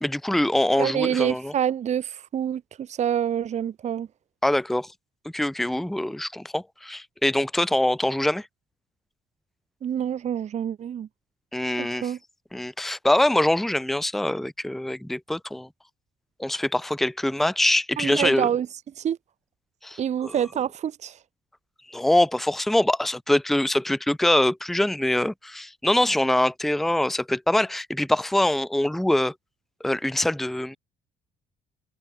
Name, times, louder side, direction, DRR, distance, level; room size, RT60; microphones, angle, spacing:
voice 1, 0.0-1.5 4.4-4.9 5.3-8.5 11.5-12.1 12.5-15.7 16.4-18.5 19.8-20.4 21.9-29.3 29.8-30.8, left 1 dB, ahead, 0.7 m, -24 dB
voice 2, 0.8-4.1 9.8-11.1 11.8-12.2 18.0-18.7 19.0-19.2 20.0-21.2, right 9 dB, 45° right, 0.9 m, -27 dB
cardioid pair, 110°, 17 cm